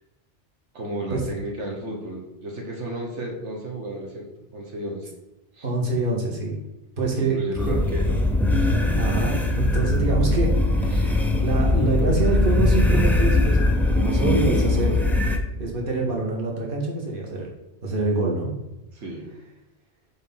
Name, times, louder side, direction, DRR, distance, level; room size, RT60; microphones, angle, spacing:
voice 1, 0.7-5.1 5.5-5.7 7.2-8.2 10.9-11.1 18.9-19.3, right 1 dB, 85° right, 0 dB, 1.5 m, -33 dB
voice 2, 5.6-6.6 7.0-7.4 7.7-7.8 9.0-10.5 10.8-13.6 13.9-15.0 15.5-17.5 17.8-18.5, right 3 dB, 50° right, -2 dB, 1.7 m, -25 dB
sound 1, 7.6-15.4, left 2 dB, ahead, 0.5 m, -21 dB
6.6 x 3.9 x 5.5 m, 0.93 s
omnidirectional pair, 1.2 m